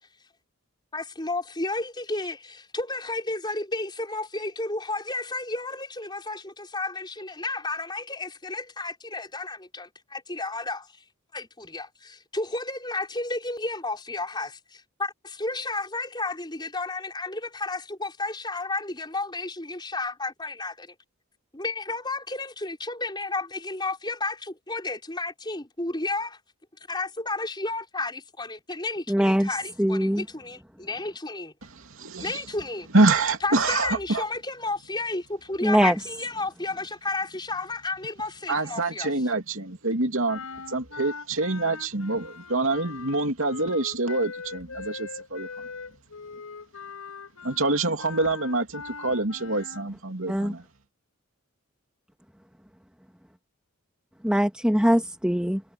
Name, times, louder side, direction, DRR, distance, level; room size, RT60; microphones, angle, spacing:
voice 1, 0.9-11.0 11.3-20.9 21.5-26.4 26.9-31.5 32.2-32.9 33.4-39.1, left 2 dB, 20° left, 5.6 m, -32 dB
voice 2, 29.1-29.5 29.8-30.2 35.6-36.0 50.3-50.5 54.2-55.6, equal, 5° right, 2.2 m, -22 dB
voice 3, 31.7-32.4 32.9-34.2 38.5-45.5 47.4-50.6, right 2 dB, 65° right, 3.0 m, -26 dB
sound 1, 40.3-49.9, left 4 dB, 90° left, 5.1 m, -41 dB
head